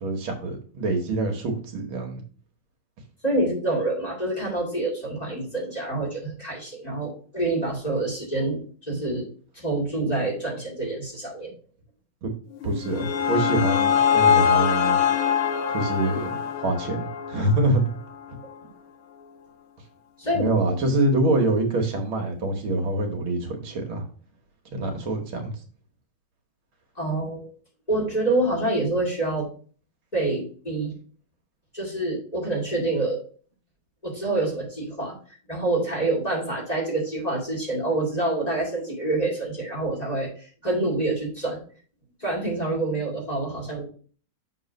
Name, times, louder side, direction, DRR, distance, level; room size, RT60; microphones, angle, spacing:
voice 1, 0.0-2.2 12.2-12.3 12.6-15.0 15.7-17.8 20.3-24.0 24.7-25.6, right 2 dB, 75° right, 3 dB, 2.0 m, -25 dB
voice 2, 3.2-9.3 9.5-11.5 20.2-20.5 27.0-27.5 27.9-29.5 30.1-30.9 31.7-33.2 34.0-35.2 35.5-41.6 42.2-43.9, right 2 dB, 20° left, -4 dB, 2.5 m, -27 dB
sound 1, 12.6-17.8, left 8 dB, 90° left, 1.5 m, -23 dB
6.4 x 3.9 x 5.1 m, 0.42 s
omnidirectional pair, 2.3 m